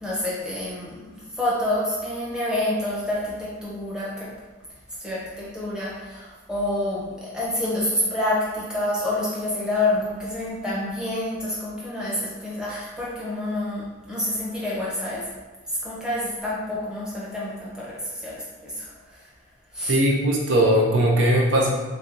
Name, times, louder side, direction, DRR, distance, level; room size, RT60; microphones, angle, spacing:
voice 1, 0.0-4.3 5.0-15.2 15.7-19.3 19.7-19.9, left 1 dB, 5° right, -7 dB, 0.8 m, -28 dB
voice 2, 19.9-21.7, right 1 dB, 65° right, -1 dB, 0.5 m, -19 dB
3.5 x 3.2 x 2.5 m, 1.2 s
head